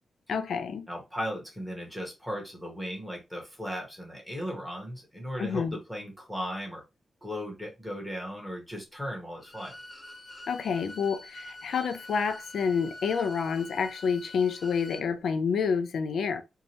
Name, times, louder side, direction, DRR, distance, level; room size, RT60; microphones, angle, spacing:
voice 1, 0.3-0.9 5.4-5.8 10.5-16.4, left 6 dB, 75° left, 0.4 m, -28 dB
voice 2, 0.9-6.8 7.2-9.7, equal, 5° left, 1.0 m, -37 dB
Bowed string instrument, 9.4-15.1, left 1 dB, 25° left, 0.5 m, -46 dB
2.7 x 2.2 x 2.8 m
wide cardioid pair, 135°, 0 cm